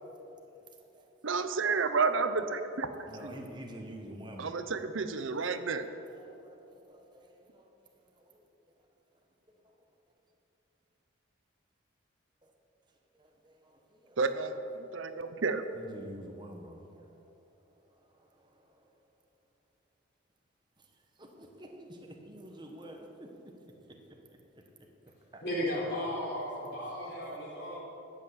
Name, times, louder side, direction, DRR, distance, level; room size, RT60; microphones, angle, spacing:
voice 1, 0.0-0.4 0.8-1.5 1.9-2.0 2.5-4.7 5.3-7.7 8.0-8.7 9.5-9.6 12.4-12.5 13.1-14.2 14.5-14.9 15.7-17.3 17.8-18.9 20.8-20.9 21.2-23.5 23.9-24.0 24.5-24.6 25.0-25.4 27.1-27.7, right 1 dB, 20° right, 1.3 m, -50 dB
voice 2, 1.2-3.1 4.4-5.9 14.2-14.5 14.9-15.6, right 4 dB, 70° right, 0.7 m, -30 dB
voice 3, 25.4-27.8, left 1 dB, 50° left, 3.7 m, -35 dB
12.5 x 8.5 x 8.3 m
head